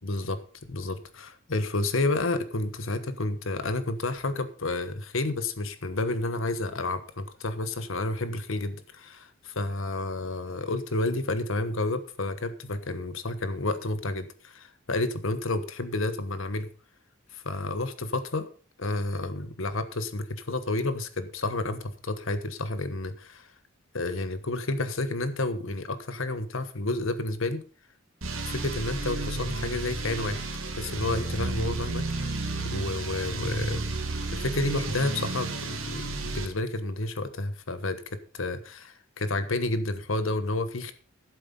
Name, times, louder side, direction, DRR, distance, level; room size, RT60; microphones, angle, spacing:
voice 1, 0.0-16.7 17.3-18.5 18.8-23.5 23.9-27.6 28.5-30.5 30.8-32.4 32.6-33.8 34.3-40.9, left 2 dB, 70° left, 11 dB, 1.2 m, -30 dB
sound 1, 28.2-36.5, right 3 dB, 80° right, 2.6 m, -32 dB
11.5 x 8.2 x 5.4 m, 0.39 s
head